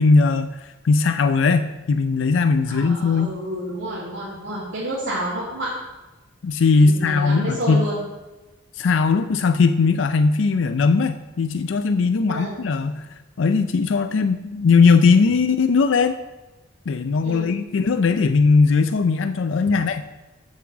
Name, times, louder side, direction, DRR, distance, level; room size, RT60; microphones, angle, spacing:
voice 1, 0.0-3.4 6.4-7.9 8.8-13.1 13.4-16.2 16.9-20.0, left 4 dB, 80° left, 9 dB, 0.4 m, -19 dB
voice 2, 2.7-5.7 6.7-8.0 12.3-12.6 17.2-17.5, equal, 75° right, -9 dB, 2.7 m, -29 dB
7.3 x 6.0 x 7.3 m, 1.1 s
head